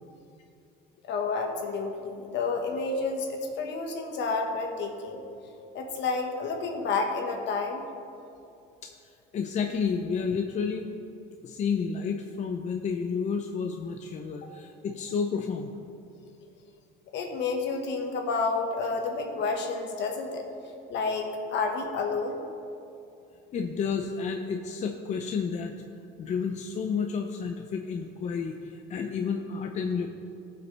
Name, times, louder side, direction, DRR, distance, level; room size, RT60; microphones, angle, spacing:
voice 1, 1.1-5.2 5.7-7.8 14.4-14.5 17.1-20.4 20.9-22.4, left 4 dB, 60° left, 3 dB, 1.4 m, -30 dB
voice 2, 9.3-10.9 11.4-15.7 23.5-25.7 26.2-30.1, left 6 dB, 35° left, 4 dB, 0.5 m, -31 dB
17.5 x 5.9 x 3.3 m, 2.6 s
cardioid pair, 125°, 21 cm